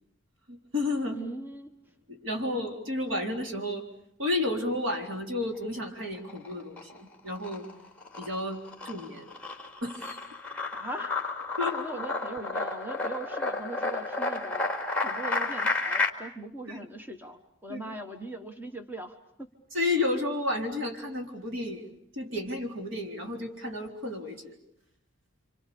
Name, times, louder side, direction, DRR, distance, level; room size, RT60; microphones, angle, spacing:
voice 1, 0.5-1.2 2.1-3.8 4.2-7.7 8.2-9.3 9.8-10.2 11.6-11.7 16.7-16.8 17.7-17.8 19.7-21.9 22.1-24.5, left 2 dB, 65° right, 2 dB, 3.9 m, -32 dB
voice 2, 1.1-1.9 10.7-11.1 11.7-14.7 15.0-19.5, right 2 dB, 10° right, 5 dB, 1.3 m, -40 dB
sound 1, 6.1-7.0 7.3-16.1, left 3 dB, 5° left, 2.3 m, -31 dB
30.0 x 26.0 x 6.9 m, 0.71 s
head